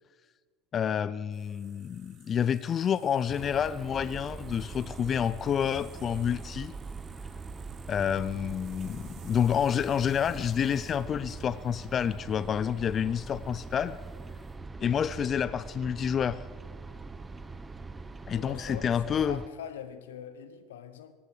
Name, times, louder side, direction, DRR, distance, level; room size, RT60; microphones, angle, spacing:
voice 1, 0.7-6.7 7.9-14.0 14.8-16.4 18.3-19.4, left 8 dB, 35° left, 16 dB, 0.4 m, -29 dB
sound 1, 1.3-14.5, right 8 dB, 50° right, 2.9 m, -59 dB
sound 2, 3.3-19.5, right 4 dB, 15° right, 0.9 m, -42 dB
voice 2, 18.3-21.1, left 9 dB, 90° left, 12 dB, 1.1 m, -43 dB
17.5 x 14.5 x 4.9 m, 1.5 s
hypercardioid pair, 95°, 0 cm